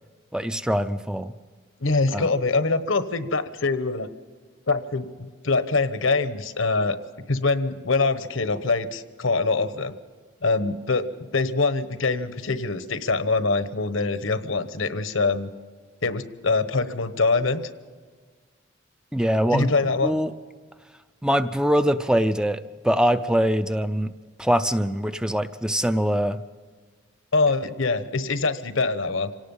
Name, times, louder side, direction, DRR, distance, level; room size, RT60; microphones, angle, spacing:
voice 1, 0.3-1.3 2.1-2.3 19.1-19.7 20.0-20.3 21.2-24.1 24.4-26.4, equal, 5° right, 10 dB, 0.5 m, -23 dB
voice 2, 1.8-4.1 4.7-7.0 7.3-9.9 10.4-15.5 16.0-17.6 19.5-20.2 27.3-29.3, left 3 dB, 75° left, 11 dB, 1.1 m, -24 dB
26.0 x 18.0 x 5.5 m, 1.5 s
head